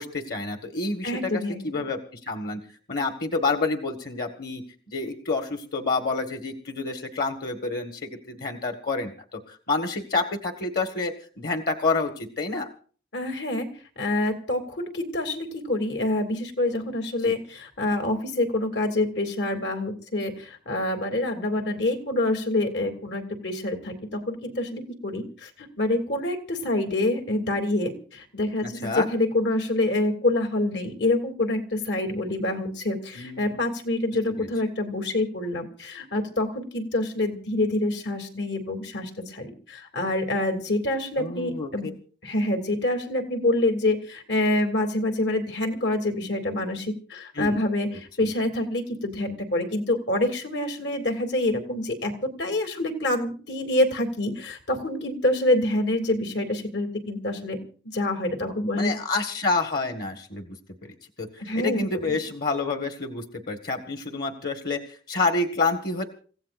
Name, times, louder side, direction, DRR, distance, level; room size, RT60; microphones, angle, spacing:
voice 1, 0.0-2.6 2.9-12.7 17.2-17.3 28.6-29.1 33.1-33.7 34.4-34.5 41.2-41.7 47.4-47.6 47.9-48.0 58.8-60.6 60.8-66.0, left 3 dB, 60° left, 6 dB, 1.6 m, -28 dB
voice 2, 1.0-1.6 13.1-13.7 14.0-41.9 42.2-57.6 57.8-58.9 61.4-62.0, left 1 dB, 85° left, 4 dB, 2.9 m, -26 dB
29.5 x 15.5 x 2.6 m, 0.42 s
head